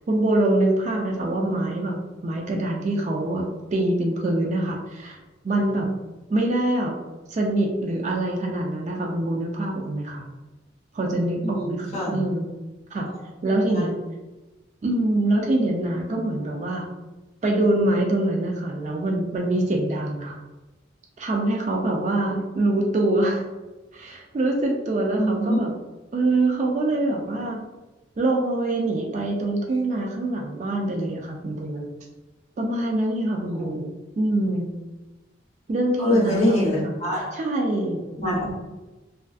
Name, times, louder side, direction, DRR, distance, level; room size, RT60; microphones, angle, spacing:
voice 1, 0.1-2.0 2.2-3.4 3.7-5.2 5.4-5.9 6.3-6.9 7.3-10.3 10.9-12.5 12.9-13.1 13.4-13.9 14.8-16.8 17.4-20.4 21.2-23.4 23.9-25.7 26.1-27.6 28.2-31.9 32.6-33.9 34.2-34.7 35.7-37.0 37.3-38.2, right 1 dB, 40° right, 0 dB, 0.3 m, -24 dB
voice 2, 11.4-12.2 13.7-13.9 25.2-25.6 33.5-33.7 36.0-37.3 38.2-38.5, equal, 35° left, -6 dB, 0.9 m, -24 dB
2.4 x 2.3 x 2.4 m, 1.1 s
head